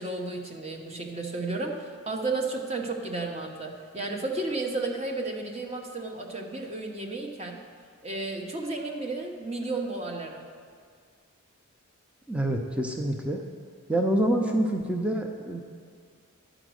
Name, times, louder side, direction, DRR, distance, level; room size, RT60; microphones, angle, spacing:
voice 1, 0.0-7.6 8.0-10.4, right 3 dB, 30° right, 1 dB, 0.9 m, -33 dB
voice 2, 12.3-13.4 13.9-15.6, right 1 dB, 5° right, 2 dB, 0.5 m, -26 dB
11.5 x 5.0 x 6.3 m, 2.1 s
head